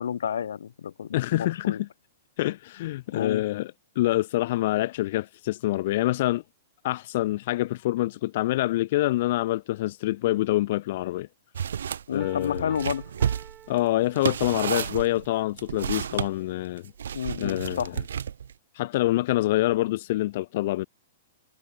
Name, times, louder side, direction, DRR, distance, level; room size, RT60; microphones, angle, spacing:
voice 1, 0.0-1.8 3.1-3.4 12.1-13.0 17.1-17.9, left 8 dB, 85° left, 1.3 m, -30 dB
voice 2, 1.1-1.9 2.4-6.4 6.8-11.3 12.1-12.7 13.7-16.9 17.4-18.0 18.7-20.9, left 16 dB, 40° left, 0.5 m, -26 dB
sound 1, 11.5-12.0 12.4-16.3 17.0-18.5, right 8 dB, 90° right, 0.3 m, -31 dB
Piano, 12.2-14.8, right 10 dB, 15° right, 1.0 m, -49 dB
hypercardioid pair, 180°, 0 cm